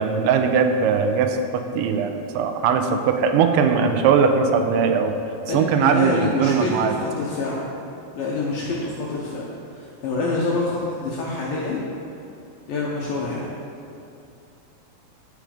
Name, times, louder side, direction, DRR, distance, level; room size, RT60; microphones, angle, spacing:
voice 1, 0.0-5.1 5.5-6.9, right 6 dB, 90° right, 6 dB, 3.0 m, -20 dB
voice 2, 5.5-7.6 8.1-9.5 9.7-11.8 12.7-13.5, left 3 dB, 75° left, -4 dB, 2.1 m, -26 dB
14.5 x 5.2 x 5.0 m, 2.7 s
omnidirectional pair, 5.3 m